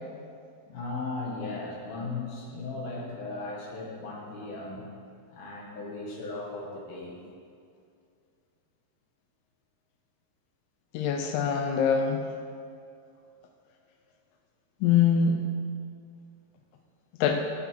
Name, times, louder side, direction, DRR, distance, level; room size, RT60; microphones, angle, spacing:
voice 1, 0.7-4.8 5.3-7.2, left 3 dB, 60° left, -3 dB, 3.2 m, -37 dB
voice 2, 10.9-12.2 14.8-15.4 17.2-17.4, left 7 dB, 85° left, 3 dB, 3.0 m, -23 dB
17.0 x 8.0 x 4.7 m, 2.4 s
omnidirectional pair, 5.3 m